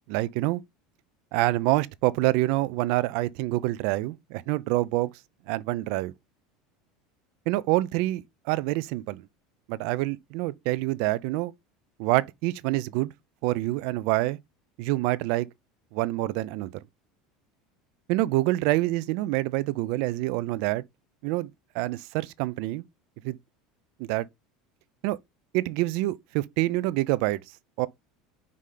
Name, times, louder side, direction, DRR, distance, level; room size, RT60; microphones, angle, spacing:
voice 1, 0.1-0.6 1.3-5.1 5.5-6.1 7.5-9.2 9.7-11.5 12.0-13.1 13.4-14.4 14.8-15.5 15.9-16.7 18.1-20.8 21.2-22.8 23.2-23.4 24.0-24.3 25.0-25.2 25.5-27.4 27.8-27.9, right 18 dB, 55° right, 0.4 m, -26 dB
5.5 x 4.9 x 3.7 m
cardioid pair, 170°, 0 cm